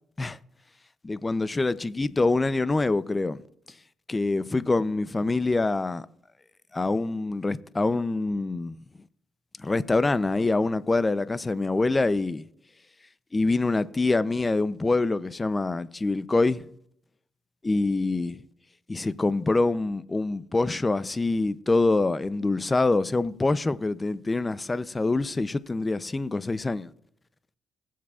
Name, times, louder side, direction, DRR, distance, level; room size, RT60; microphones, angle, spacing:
voice 1, 1.0-3.4 4.1-6.0 6.7-8.8 9.6-12.4 13.3-16.7 17.6-18.4 18.9-26.9, left 3 dB, 20° left, 0.5 m, -25 dB
19.0 x 7.4 x 2.4 m
cardioid pair, 90°, 0 cm